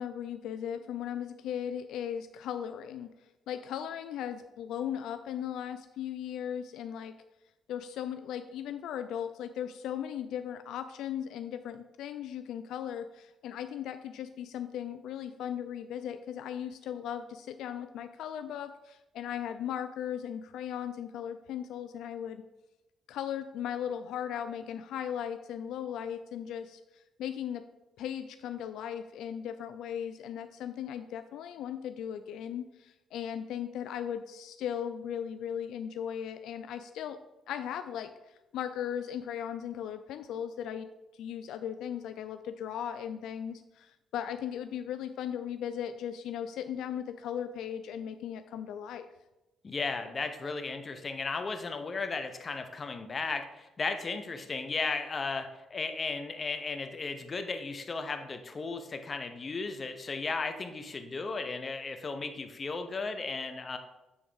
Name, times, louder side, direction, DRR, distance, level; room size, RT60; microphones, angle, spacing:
voice 1, 0.0-3.1 3.5-7.1 7.7-22.4 23.1-27.6 28.0-37.2 37.5-38.1 38.5-40.9 41.2-49.1, left 9 dB, 85° left, 9 dB, 0.3 m, -37 dB
voice 2, 49.6-63.8, left 4 dB, 35° left, 7 dB, 0.8 m, -35 dB
7.0 x 3.5 x 5.0 m, 1.0 s
cardioid pair, 90°, 0 cm